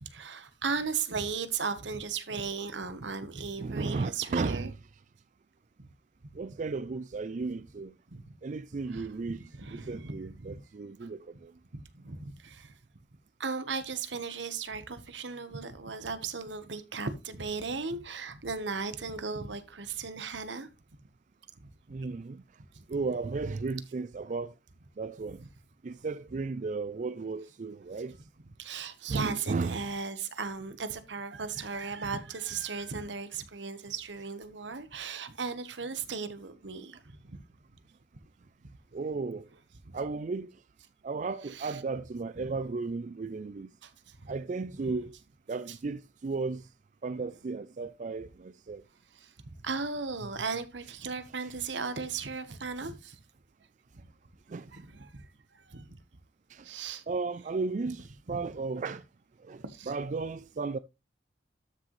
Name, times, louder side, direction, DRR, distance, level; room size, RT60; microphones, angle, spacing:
voice 1, 0.0-4.7 5.8-5.9 8.1-8.2 8.9-9.1 9.6-10.6 11.7-12.7 13.4-20.7 28.6-37.4 39.8-39.9 41.5-41.8 43.8-43.9 44.8-44.9 49.2-49.3 49.6-53.2 54.7-55.2 55.7-56.0 56.6-57.0 58.3-58.4 59.6-59.9, right 5 dB, 80° right, 1.2 m, -36 dB
voice 2, 3.6-4.8 6.3-8.0 8.4-11.5 21.9-22.6 22.9-24.5 25.0-25.4 25.8-28.2 29.1-29.8 38.9-39.5 39.9-40.6 41.0-43.7 44.3-45.2 45.5-46.7 47.0-48.8 51.4-51.5 54.5-54.9 56.5-56.7 57.1-59.0 59.4-60.8, right 4 dB, 40° right, 0.4 m, -35 dB
13.0 x 6.4 x 3.2 m
head